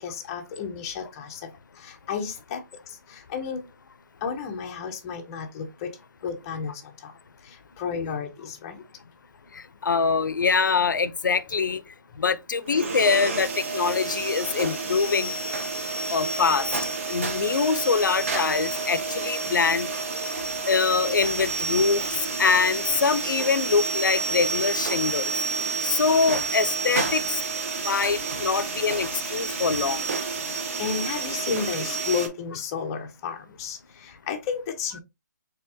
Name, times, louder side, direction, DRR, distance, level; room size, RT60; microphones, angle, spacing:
voice 1, 0.0-1.5 1.8-2.6 3.1-3.6 4.2-5.9 6.2-7.1 7.5-8.8 28.5-28.6 30.5-35.0, left 6 dB, 15° left, 0.5 m, -32 dB
voice 2, 9.5-11.8 12.2-15.4 16.1-16.7 17.1-19.9 20.7-22.0 22.4-25.3 25.8-27.3 27.8-30.1, left 5 dB, 85° left, 0.5 m, -24 dB
sound 1, 12.7-32.3, right 4 dB, 45° right, 1.1 m, -30 dB
4.5 x 3.4 x 2.6 m
hypercardioid pair, 170°, 10 cm